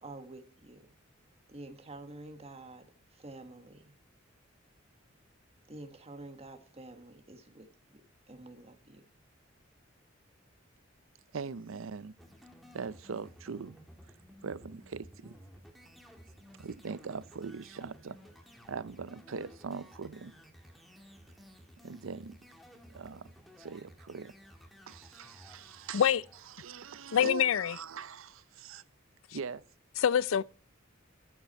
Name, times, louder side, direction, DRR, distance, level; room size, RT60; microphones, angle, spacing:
voice 1, 0.0-0.9 1.5-2.9 3.1-3.9 5.7-7.7 8.3-9.0, right 2 dB, 30° right, 1.5 m, -48 dB
voice 2, 11.3-12.1 12.7-13.8 14.4-15.4 16.6-18.2 18.7-20.3 21.8-22.4 22.9-23.3 23.6-24.3 24.9-26.1 26.5-28.8 29.3-29.6, right 5 dB, 85° right, 0.6 m, -41 dB
sound 1, 12.2-27.5, equal, ahead, 1.7 m, -56 dB
voice 3, 27.1-27.8 30.0-30.4, left 8 dB, 85° left, 0.4 m, -25 dB
13.5 x 8.2 x 4.2 m
head